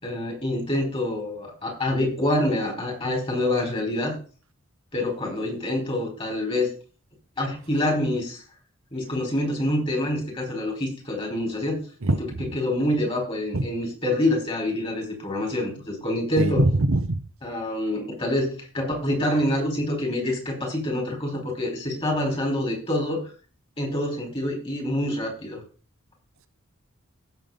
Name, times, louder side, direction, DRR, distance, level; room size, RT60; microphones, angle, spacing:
voice 1, 0.0-4.2 4.9-6.7 7.4-8.4 8.9-11.8 12.1-16.6 17.4-23.2 23.8-25.6, left 1 dB, 30° left, 4.7 m, -26 dB
voice 2, 16.4-17.2, right 2 dB, 80° right, 0.9 m, -21 dB
15.5 x 7.0 x 4.0 m
head